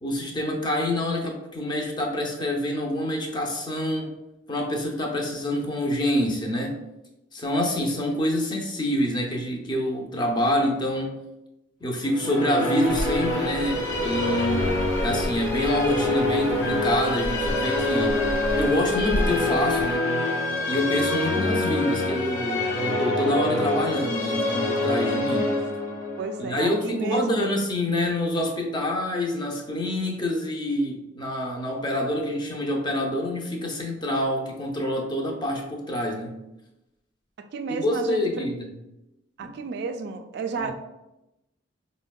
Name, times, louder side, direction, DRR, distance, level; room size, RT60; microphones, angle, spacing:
voice 1, 0.0-4.1 4.5-6.8 7.3-11.2 11.8-14.7 15.0-18.2 18.6-20.1 20.7-25.5 26.4-36.3 37.7-38.7 39.4-39.5 40.6-40.7, left 1 dB, 25° left, 1 dB, 0.4 m, -26 dB
Musical instrument, 12.0-27.4, left 1 dB, 75° left, 1.1 m, -26 dB
Bird, 12.9-20.0, left 1 dB, 55° left, 0.7 m, -33 dB
Wind instrument woodwind instrument, 16.6-22.8, left 4 dB, 90° left, 0.5 m, -33 dB
voice 2, 26.2-27.5 37.5-38.4 39.4-40.7, right 4 dB, 60° right, 8 dB, 0.3 m, -31 dB
4.3 x 2.1 x 2.2 m, 0.93 s
head